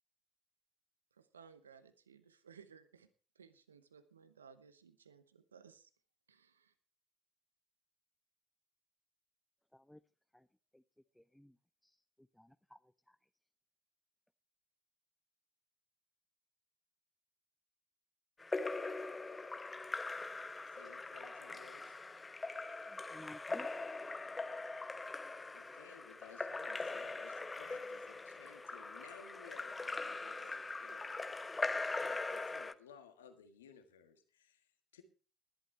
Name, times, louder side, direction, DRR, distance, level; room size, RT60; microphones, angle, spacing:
voice 1, 1.1-3.1 3.3-5.9 6.3-6.7, right 6 dB, 90° right, 13 dB, 0.9 m, -60 dB
voice 2, 11.2-11.6 11.8-12.0 12.4-12.8 13.1-13.2 22.9-23.7, left 1 dB, 5° left, 11 dB, 0.6 m, -55 dB
Splash splatter / Drip / Trickle dribble, 18.4-32.7, left 3 dB, 20° left, 1.0 m, -41 dB
voice 3, 20.6-22.0 25.5-31.3 31.7-35.0, left 7 dB, 85° left, 7 dB, 1.7 m, -59 dB
20.0 x 11.5 x 3.3 m, 0.35 s
figure-of-eight pair, 55°, 0 cm